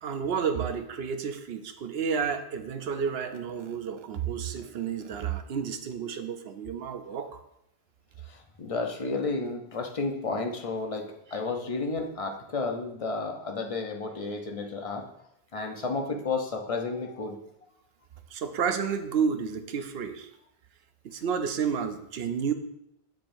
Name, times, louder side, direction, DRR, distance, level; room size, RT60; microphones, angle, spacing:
voice 1, 0.0-7.4 18.3-20.3 21.0-22.5, right 6 dB, 70° right, 8 dB, 0.9 m, -31 dB
voice 2, 8.2-15.1 15.5-17.4, left 3 dB, 35° left, 3 dB, 0.7 m, -32 dB
7.4 x 7.2 x 2.6 m, 0.81 s
omnidirectional pair, 1.1 m